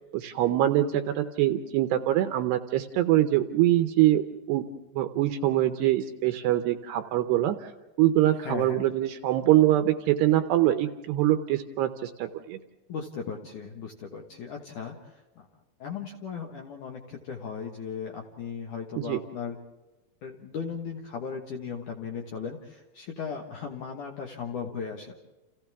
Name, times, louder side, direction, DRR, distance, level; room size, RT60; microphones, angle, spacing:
voice 1, 0.1-4.7 5.0-7.7 8.0-12.6 19.0-19.2, right 13 dB, 80° right, 8 dB, 2.6 m, -24 dB
voice 2, 8.4-8.8 12.9-15.5 15.8-19.6 20.2-25.2, left 6 dB, 65° left, 2 dB, 2.1 m, -37 dB
30.0 x 28.5 x 3.5 m, 1.1 s
omnidirectional pair, 5.5 m